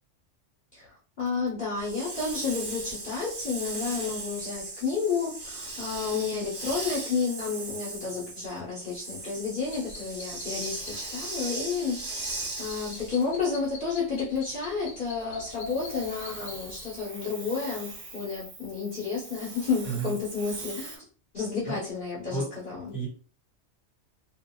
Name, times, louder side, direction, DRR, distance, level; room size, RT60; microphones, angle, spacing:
voice 1, 0.7-21.0 21.3-22.9, left 5 dB, 45° left, -7 dB, 1.1 m, -31 dB
Hiss, 1.8-13.3 15.5-21.0, right 3 dB, 50° right, 0.9 m, -39 dB
sound 1, 9.6-17.0, left 2 dB, 75° left, 1.2 m, -44 dB
voice 2, 19.8-20.1 21.6-21.8 22.3-22.5 22.9-23.1, right 4 dB, 15° left, -5 dB, 1.2 m, -31 dB
2.9 x 2.5 x 2.2 m, 0.39 s
omnidirectional pair, 1.3 m